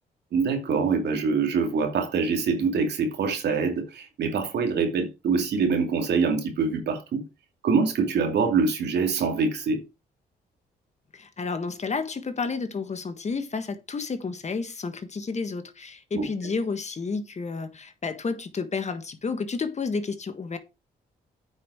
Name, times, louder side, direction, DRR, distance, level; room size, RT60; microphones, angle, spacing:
voice 1, 0.3-7.3 7.6-9.8 16.1-16.3, right 5 dB, 75° right, 2.4 m, -24 dB
voice 2, 11.1-20.6, left 4 dB, 40° left, 1.6 m, -31 dB
9.1 x 5.6 x 4.7 m
cardioid pair, 70°, 18 cm